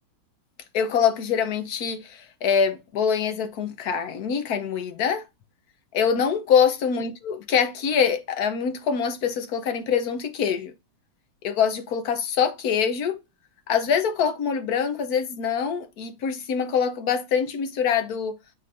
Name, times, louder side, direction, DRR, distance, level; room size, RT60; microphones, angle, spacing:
voice 1, 0.7-5.2 5.9-10.7 11.4-13.2 13.7-18.4, left 7 dB, 60° left, 1.2 m, -24 dB
9.5 x 3.9 x 2.7 m
omnidirectional pair, 2.3 m